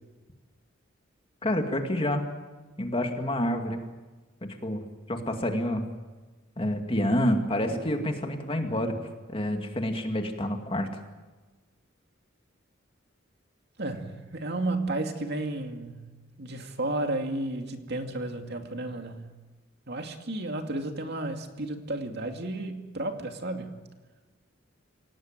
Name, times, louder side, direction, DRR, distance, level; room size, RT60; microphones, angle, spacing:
voice 1, 1.4-2.2 2.8-3.8 4.4-5.8 6.6-9.0 9.3-10.9, left 1 dB, 25° left, 4 dB, 2.3 m, -28 dB
voice 2, 13.8-16.1 16.4-19.3 19.9-23.8, right 2 dB, 55° right, 5 dB, 2.4 m, -32 dB
27.0 x 18.0 x 9.0 m, 1.3 s
head